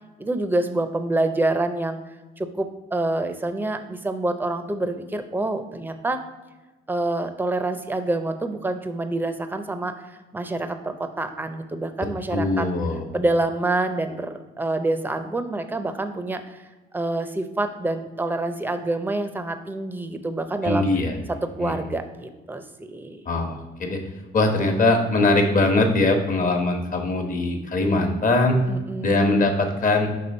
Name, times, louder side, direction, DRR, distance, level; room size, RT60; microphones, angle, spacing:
voice 1, 0.2-2.0 2.4-6.2 6.9-12.7 13.1-16.6 16.9-20.9 21.6-23.2 28.7-29.3, right 2 dB, 10° right, 8 dB, 0.6 m, -27 dB
voice 2, 12.3-13.1 20.6-21.2 21.6-21.7 23.2-24.0 24.3-28.6 29.0-30.1, left 2 dB, 40° left, 4 dB, 1.2 m, -21 dB
6.1 x 3.5 x 5.3 m, 1.2 s
cardioid pair, 90°, 20 cm